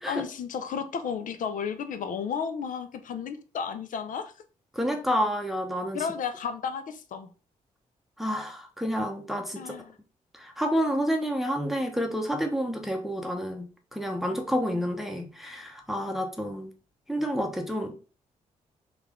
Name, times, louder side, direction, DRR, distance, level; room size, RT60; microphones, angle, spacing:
voice 1, 0.1-4.3 5.9-7.3 9.6-10.0, left 6 dB, 70° left, 10 dB, 0.5 m, -33 dB
voice 2, 4.7-6.0 8.2-9.7 10.3-13.6 13.9-16.7 17.1-17.9, equal, ahead, 3 dB, 0.7 m, -29 dB
3.3 x 2.4 x 3.5 m, 0.36 s
cardioid pair, 65°, 14 cm